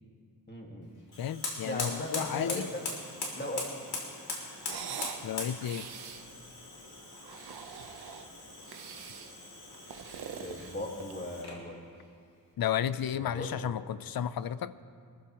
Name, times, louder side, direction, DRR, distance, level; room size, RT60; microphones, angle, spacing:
voice 1, 0.5-0.9 1.6-2.8 3.4-3.6 10.4-11.8 13.1-13.7, left 1 dB, 25° left, -1 dB, 1.8 m, -38 dB
Fire, 1.1-11.7, left 3 dB, 90° left, 3.0 m, -41 dB
voice 2, 1.2-2.7 5.2-5.9 12.6-14.7, left 9 dB, 70° left, 15 dB, 0.6 m, -33 dB
sound 1, 4.6-5.2 5.6-6.3 7.1-8.3 8.7-9.3 9.7-11.3, right 7 dB, 85° right, 0.9 m, -43 dB
24.0 x 14.0 x 3.0 m, 2.3 s
wide cardioid pair, 125°, 38 cm